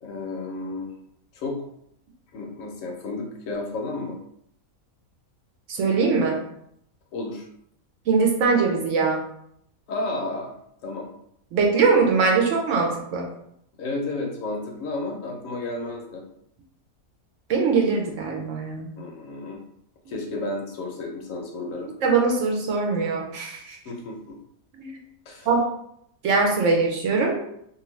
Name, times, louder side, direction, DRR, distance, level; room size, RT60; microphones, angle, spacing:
voice 1, 0.0-0.9 1.3-1.5 2.3-4.2 7.1-7.4 9.9-10.5 10.8-11.1 13.8-16.2 19.0-19.6 20.1-21.9 23.8-24.4 25.3-25.5, left 2 dB, 70° left, 1 dB, 0.9 m, -32 dB
voice 2, 5.7-6.4 8.1-9.2 11.5-13.3 17.5-18.9 22.0-23.8 24.8-24.9 25.5-25.6 26.2-27.3, right 4 dB, 70° right, 1 dB, 0.9 m, -22 dB
2.6 x 2.5 x 3.1 m, 0.72 s
omnidirectional pair, 1.5 m